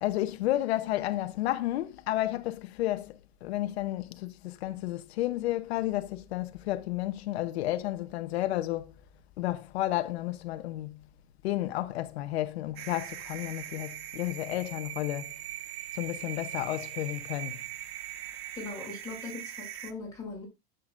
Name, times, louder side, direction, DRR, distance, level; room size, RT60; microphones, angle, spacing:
voice 1, 0.0-8.9 9.4-11.0 11.4-15.3 15.9-17.6, left 15 dB, 80° left, 1.0 m, -32 dB
sound 1, 12.8-19.9, right 13 dB, 75° right, 1.6 m, -41 dB
voice 2, 18.5-20.5, left 4 dB, 10° left, 7.0 m, -40 dB
13.5 x 7.9 x 2.5 m
supercardioid pair, 160°, 31 cm